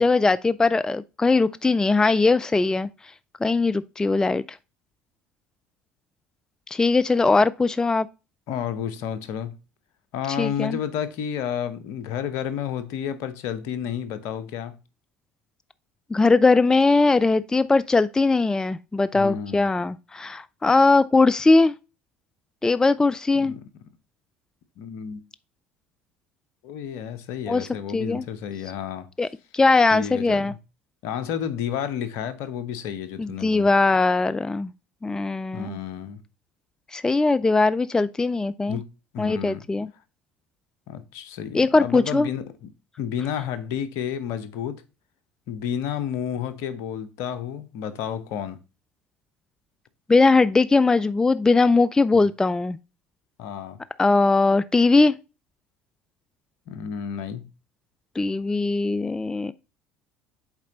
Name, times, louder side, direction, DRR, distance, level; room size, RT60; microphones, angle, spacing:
voice 1, 0.0-2.9 3.4-4.4 6.7-8.1 10.3-10.8 16.1-21.7 22.6-23.5 27.5-27.7 27.9-28.3 29.2-29.3 29.5-30.5 33.2-34.7 35.0-35.8 36.9-38.8 39.2-39.9 41.5-42.3 50.1-52.8 54.0-55.1 58.2-59.5, left 3 dB, 10° left, 0.3 m, -20 dB
voice 2, 8.5-9.5 10.1-14.7 19.1-19.7 23.3-23.6 24.8-25.2 26.6-29.1 29.9-30.6 31.0-33.7 35.5-36.2 38.7-38.8 39.1-39.6 40.9-42.7 43.0-44.8 45.5-48.6 52.1-52.3 53.4-53.8 56.7-57.4, left 9 dB, 65° left, 0.8 m, -31 dB
7.3 x 4.3 x 3.8 m
hypercardioid pair, 65°, 5 cm